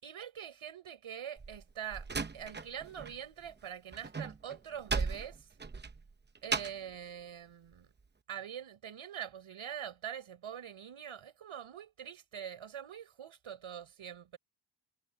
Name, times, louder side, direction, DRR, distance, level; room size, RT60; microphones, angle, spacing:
voice 1, 0.0-2.1 2.3-5.5 6.4-7.9 8.3-14.4, right 9 dB, 80° right, 6.9 m, -44 dB
Slam, 1.4-3.2 3.4-6.9, right 4 dB, 20° right, 0.8 m, -37 dB
wide cardioid pair, 175°, 49 cm